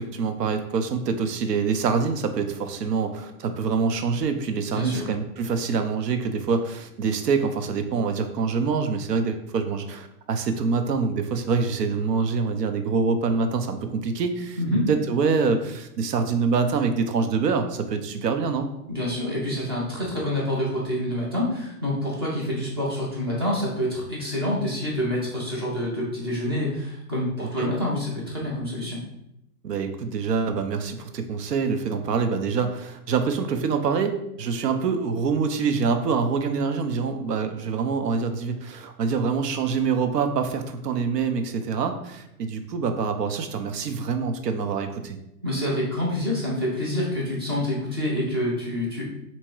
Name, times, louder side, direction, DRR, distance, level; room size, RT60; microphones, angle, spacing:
voice 1, 0.0-14.6 14.9-18.7 27.4-27.7 29.6-45.2, right 5 dB, 85° right, 7 dB, 0.8 m, -25 dB
voice 2, 4.7-5.0 14.6-14.8 18.9-29.0 45.4-49.1, left 1 dB, 20° right, -4 dB, 0.4 m, -27 dB
3.5 x 3.0 x 4.5 m, 0.82 s
hypercardioid pair, 155°, 47 cm